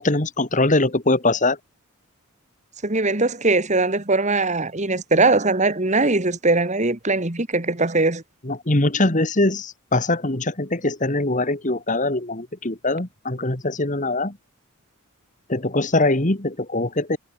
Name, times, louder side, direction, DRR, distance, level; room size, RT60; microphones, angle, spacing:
voice 1, 0.0-1.6 8.4-14.4 15.5-17.2, left 2 dB, 35° left, 2.0 m, -22 dB
voice 2, 2.8-8.2, right 3 dB, 30° right, 1.8 m, -20 dB
head